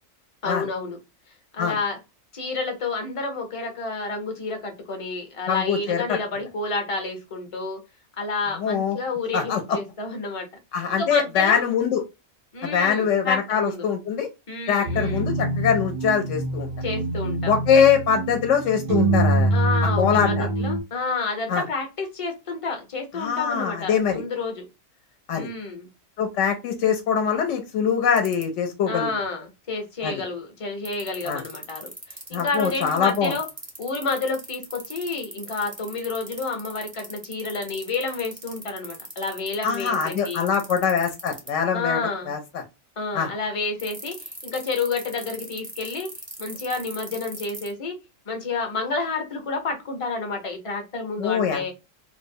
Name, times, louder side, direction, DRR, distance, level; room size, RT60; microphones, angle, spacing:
voice 1, 0.4-1.0 1.5-2.0 2.3-7.8 8.2-10.5 11.0-11.6 12.5-13.9 14.5-15.3 16.8-17.5 19.5-24.7 25.3-25.9 28.9-33.5 33.8-40.5 41.7-42.3 43.0-46.1 46.4-48.0 48.3-51.7, left 3 dB, 35° left, 4 dB, 0.6 m, -30 dB
voice 2, 5.5-6.2 8.6-9.0 9.3-9.6 10.7-12.0 12.6-14.3 14.7-16.7 17.5-19.5 20.0-20.5 21.5-21.6 23.2-24.2 25.3-25.5 26.2-29.1 30.0-30.1 31.3-31.4 32.3-33.3 39.6-42.0 42.3-42.6 43.1-43.3 51.2-51.7, left 7 dB, 70° left, 5 dB, 0.9 m, -23 dB
sound 1, 14.9-20.8, right 2 dB, 60° right, 0.6 m, -25 dB
sound 2, 28.2-28.4 30.8-41.5 43.8-47.7, right 1 dB, 15° right, 0.4 m, -38 dB
2.6 x 2.0 x 2.5 m, 0.25 s
omnidirectional pair, 1.4 m